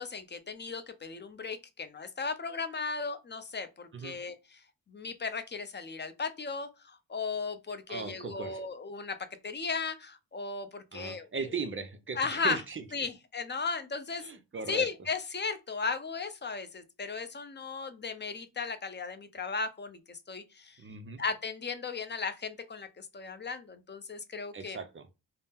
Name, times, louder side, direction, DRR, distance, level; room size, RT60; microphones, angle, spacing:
voice 1, 0.0-4.4 4.9-9.2 9.4-11.3 12.2-12.6 12.9-14.2 14.7-20.8 21.2-24.8, left 4 dB, 25° left, 0.5 m, -36 dB
voice 2, 7.9-8.6 10.9-12.8 14.2-14.9 20.8-21.2 24.5-25.1, right 4 dB, 30° right, 0.5 m, -38 dB
2.6 x 2.0 x 3.5 m
cardioid pair, 65°, 42 cm